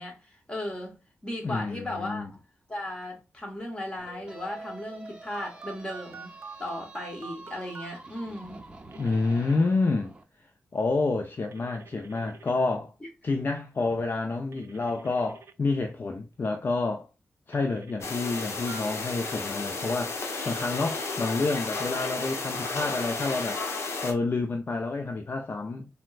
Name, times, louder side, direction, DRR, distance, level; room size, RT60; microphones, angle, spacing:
voice 1, 0.0-2.3 2.7-8.6 13.0-13.1, left 1 dB, 20° left, 1.4 m, -36 dB
voice 2, 1.4-2.3 9.0-10.1 10.7-12.9 13.2-17.1 17.5-23.6 24.0-25.9, left 3 dB, 45° left, 0.4 m, -29 dB
sound 1, 4.0-10.2, right 3 dB, 20° right, 0.7 m, -46 dB
Telephone, 5.3-7.9 8.9-9.5 11.5-12.5 14.5-15.5 17.5-18.8, right 6 dB, 70° right, 0.4 m, -46 dB
sound 2, 18.0-24.1, left 3 dB, 75° left, 0.8 m, -33 dB
4.2 x 2.1 x 2.3 m
cardioid pair, 75°, 5 cm